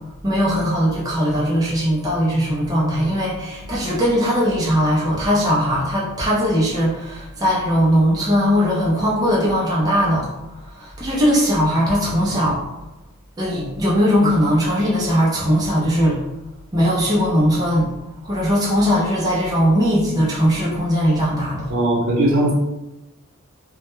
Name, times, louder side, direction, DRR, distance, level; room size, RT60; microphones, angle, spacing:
voice 1, 0.2-10.3 10.5-12.6 13.4-16.2 16.7-17.9 18.2-21.7, equal, 20° right, -6 dB, 0.4 m, -19 dB
voice 2, 21.7-22.5, right 1 dB, 65° right, -3 dB, 0.7 m, -18 dB
2.1 x 2.1 x 2.9 m, 0.96 s
head